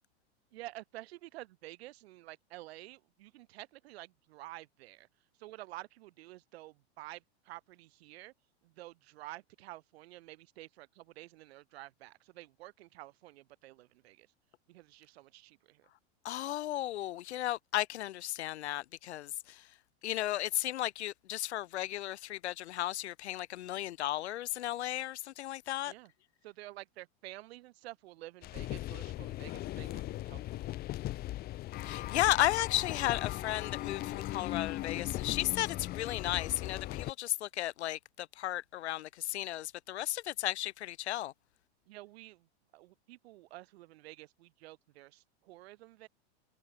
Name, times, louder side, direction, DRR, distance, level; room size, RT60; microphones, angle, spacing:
voice 1, 0.5-5.1 5.4-8.3 8.6-14.3 14.7-15.9 25.8-26.1 26.4-30.7 41.9-42.5 42.7-46.1, right 17 dB, 70° right, 4.6 m, -50 dB
voice 2, 16.2-19.3 20.0-25.9 31.8-41.3, left 14 dB, 80° left, 1.4 m, -34 dB
sound 1, 28.4-37.1, left 15 dB, 30° left, 0.8 m, -38 dB
supercardioid pair, 135°, 33 cm